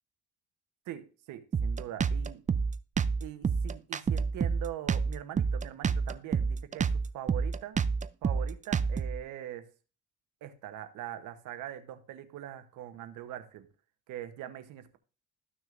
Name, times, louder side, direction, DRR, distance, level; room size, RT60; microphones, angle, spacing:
voice 1, 0.9-2.4 3.2-7.8 8.2-9.7 10.4-13.7 14.1-15.0, right 11 dB, 90° right, 10 dB, 1.0 m, -42 dB
Drum kit, 1.5-9.2, right 5 dB, 25° right, 0.4 m, -29 dB
13.5 x 6.3 x 2.5 m, 0.35 s
cardioid pair, 90°, 30 cm